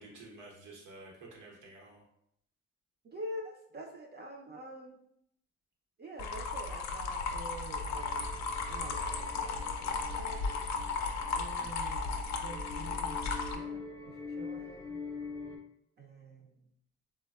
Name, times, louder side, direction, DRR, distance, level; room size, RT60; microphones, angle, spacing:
voice 1, 0.0-2.0 11.5-11.7, right 2 dB, 80° right, -2 dB, 0.9 m, -51 dB
voice 2, 3.0-5.0 6.0-10.5 11.4-13.2 13.5-15.0 16.0-16.6, right 1 dB, 35° right, 0 dB, 0.4 m, -47 dB
sound 1, 6.2-13.5, left 4 dB, 65° left, 0.4 m, -35 dB
sound 2, 7.9-15.6, left 4 dB, 15° left, 0.6 m, -45 dB
3.3 x 2.2 x 2.2 m, 0.74 s
cardioid pair, 90°, 30 cm